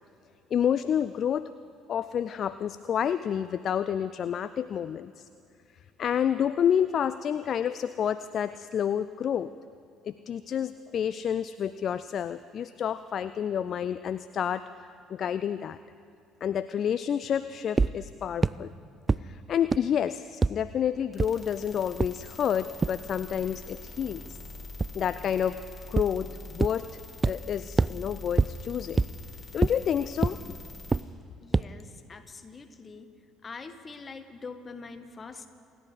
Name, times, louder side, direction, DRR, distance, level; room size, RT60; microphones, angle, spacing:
voice 1, 0.5-1.5 1.9-5.1 6.0-9.5 10.0-15.8 16.4-18.7 19.2-24.4 24.9-25.6 25.9-27.0 27.2-29.0 29.5-30.4, left 8 dB, 50° left, 14 dB, 0.4 m, -29 dB
sound 1, 17.8-17.9 18.4-18.5 19.1-19.2 19.7-19.8 20.4-20.5 21.2-21.3 22.0-22.1 22.8-22.9 24.8-24.9 26.0-26.1 26.6-26.7 27.2-27.3 27.8-27.9 28.4-28.5 29.0-29.1 29.6-29.7 30.2-30.3 30.9-31.0 31.5-31.6, right 4 dB, 25° right, 0.3 m, -22 dB
sound 2, 21.1-31.0, left 2 dB, 5° left, 4.1 m, -44 dB
voice 2, 31.4-33.1 33.4-35.5, left 4 dB, 30° left, 9 dB, 1.3 m, -44 dB
28.0 x 10.0 x 4.9 m, 2.6 s
figure-of-eight pair, 50°, 0 cm